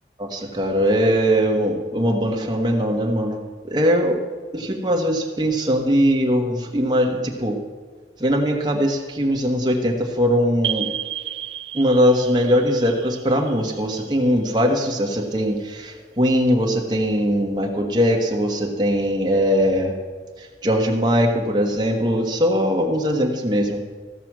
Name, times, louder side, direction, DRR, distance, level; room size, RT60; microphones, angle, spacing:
voice 1, 0.2-3.4 3.7-4.2 4.5-7.6 8.2-10.9 11.7-19.9 20.4-23.8, equal, 25° right, 0 dB, 1.3 m, -20 dB
sound 1, 10.6-15.1, right 11 dB, 85° right, 0.5 m, -33 dB
15.5 x 6.0 x 6.1 m, 1.4 s
head